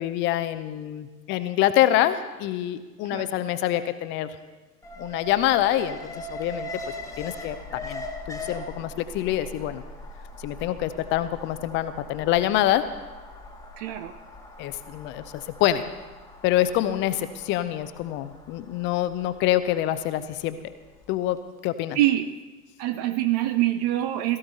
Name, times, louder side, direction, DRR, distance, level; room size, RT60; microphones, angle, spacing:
voice 1, 0.0-4.4 5.0-6.7 7.2-9.8 10.4-12.9 14.6-15.8 16.4-20.6 21.1-22.0, left 13 dB, 25° left, 12 dB, 0.6 m, -26 dB
Alarm, 4.8-20.9 21.3-21.4, left 1 dB, 5° left, 1.3 m, -41 dB
voice 2, 13.8-14.1 21.9-22.3 22.8-24.4, right 14 dB, 25° right, 10 dB, 0.4 m, -24 dB
17.0 x 14.5 x 4.1 m, 1.3 s
figure-of-eight pair, 100°, 47 cm